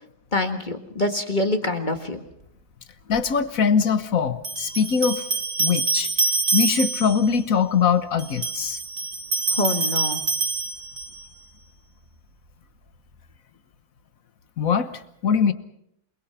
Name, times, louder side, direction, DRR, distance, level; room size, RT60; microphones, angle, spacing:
voice 1, 0.3-2.2 9.6-10.2, left 2 dB, 25° left, 6 dB, 1.7 m, -25 dB
voice 2, 3.1-5.2 5.6-6.1 6.5-8.8 14.6-15.5, left 6 dB, 50° left, 12 dB, 1.4 m, -22 dB
sound 1, 3.2-3.3 4.4-7.3 8.2-11.3, right 3 dB, 40° right, 3.4 m, -26 dB
28.0 x 21.5 x 5.7 m, 0.78 s
omnidirectional pair, 2.1 m